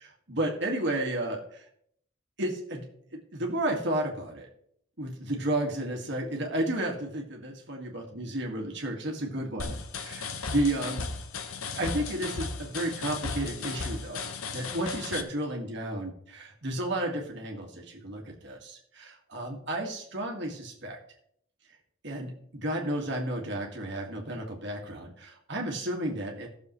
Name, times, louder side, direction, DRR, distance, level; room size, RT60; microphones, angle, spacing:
voice 1, 0.0-1.7 2.4-2.8 3.1-4.5 5.0-11.1 11.7-14.3 14.5-21.0 22.0-26.5, right 1 dB, 55° right, 1 dB, 2.1 m, -32 dB
sound 1, 9.6-15.2, left 4 dB, 80° left, 1.0 m, -35 dB
16.5 x 7.0 x 3.2 m, 0.68 s
head